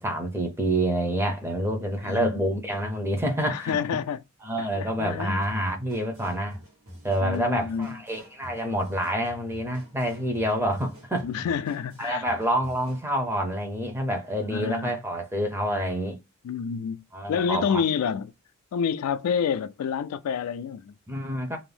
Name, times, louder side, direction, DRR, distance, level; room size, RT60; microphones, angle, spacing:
voice 1, 0.0-3.8 4.4-6.6 7.0-11.3 12.0-16.2 17.1-17.8 21.1-21.6, right 1 dB, 10° right, 0.5 m, -27 dB
voice 2, 3.5-4.2 4.6-5.4 7.2-8.0 11.2-12.2 14.5-14.9 16.4-17.0 17.3-18.3 18.7-20.9, left 7 dB, 80° left, 0.3 m, -28 dB
sound 1, 5.4-13.1, equal, 65° right, 1.2 m, -49 dB
2.6 x 2.0 x 3.2 m
head